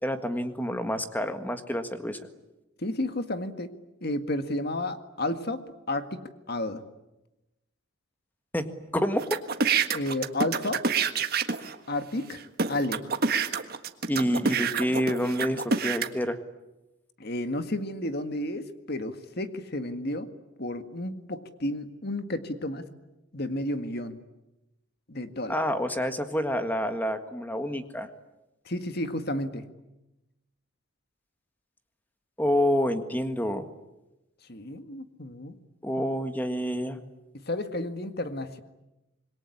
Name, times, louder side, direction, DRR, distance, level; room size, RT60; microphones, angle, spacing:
voice 1, 0.0-2.2 8.5-9.4 14.1-16.4 25.5-28.1 32.4-33.6 35.8-37.0, equal, 10° left, 8 dB, 1.7 m, -28 dB
voice 2, 2.8-3.8 4.0-5.6 5.9-6.9 9.9-10.8 11.9-12.4 12.7-13.0 17.2-20.3 20.6-22.9 23.3-24.2 25.1-25.6 28.7-29.7 34.5-35.6 36.0-36.1 37.3-38.6, left 1 dB, 50° left, 9 dB, 1.9 m, -32 dB
sound 1, 9.2-11.7 12.3-12.4 12.6-16.1, right 5 dB, 45° right, 1.6 m, -27 dB
26.5 x 22.0 x 9.9 m, 0.98 s
head